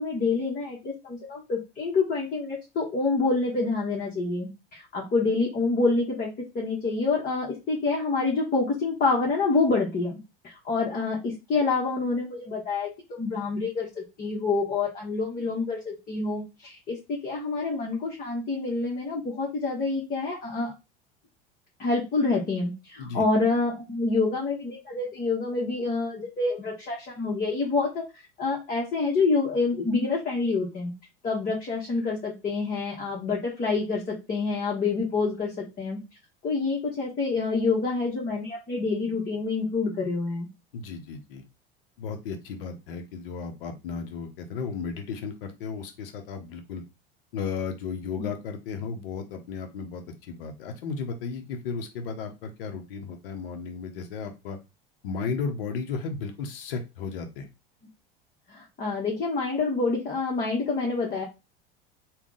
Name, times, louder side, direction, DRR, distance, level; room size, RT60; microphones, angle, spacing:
voice 1, 0.0-6.3 6.5-10.2 10.4-20.7 21.8-30.9 31.2-36.0 36.4-40.5 48.2-48.3 58.5-61.2, left 3 dB, 30° left, -3 dB, 1.1 m, -27 dB
voice 2, 40.7-41.4 42.0-46.8 47.3-54.6 55.0-57.5, left 5 dB, 65° left, 5 dB, 0.8 m, -34 dB
3.5 x 2.3 x 3.8 m, 0.26 s
figure-of-eight pair, 75°, 30 cm